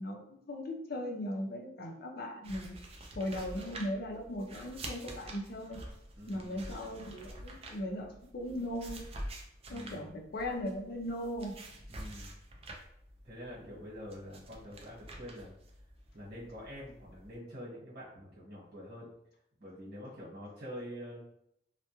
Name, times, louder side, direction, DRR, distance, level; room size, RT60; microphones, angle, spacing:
voice 1, 0.0-2.8 3.2-5.8 6.3-9.0 9.7-11.5, left 1 dB, 55° left, 1 dB, 0.5 m, -38 dB
sound 1, 2.4-17.4, right 1 dB, 35° right, 0.4 m, -48 dB
voice 2, 6.2-6.7 9.7-10.2 11.9-12.3 13.2-15.5 16.1-19.1 19.6-21.5, equal, 60° right, -6 dB, 1.1 m, -46 dB
2.2 x 2.1 x 2.9 m, 0.75 s
head